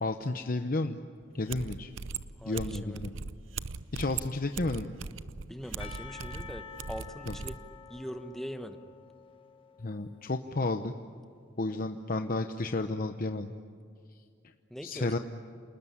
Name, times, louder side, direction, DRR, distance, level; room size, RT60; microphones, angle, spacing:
voice 1, 0.0-1.0 1.3-1.9 2.4-3.2 3.9-4.9 7.3-7.4 9.8-10.9 11.6-13.5 14.4-14.5 14.8-15.2, left 2 dB, 45° left, 7 dB, 0.9 m, -32 dB
sound 1, 1.2-1.3 1.5-7.6, right 5 dB, 90° right, 0.7 m, -39 dB
voice 2, 2.4-3.1 5.5-7.6 7.9-8.8 14.7-15.2, equal, ahead, 8 dB, 1.3 m, -42 dB
Percussion / Church bell, 5.8-10.9, left 6 dB, 30° left, 1.4 m, -49 dB
28.5 x 20.0 x 9.9 m, 2.3 s
head